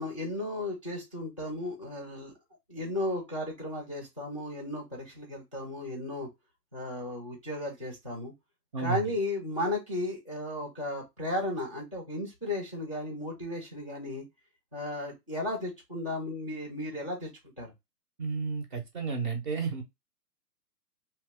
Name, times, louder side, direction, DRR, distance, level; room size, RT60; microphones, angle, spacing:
voice 1, 0.0-2.3 2.7-6.3 6.7-8.3 8.8-14.2 14.7-17.3 17.6-17.7, left 1 dB, 25° left, 0.3 m, -34 dB
voice 2, 8.7-9.1 18.2-19.8, right 5 dB, 30° right, 0.5 m, -32 dB
2.7 x 2.1 x 3.4 m
hypercardioid pair, 145°, 48 cm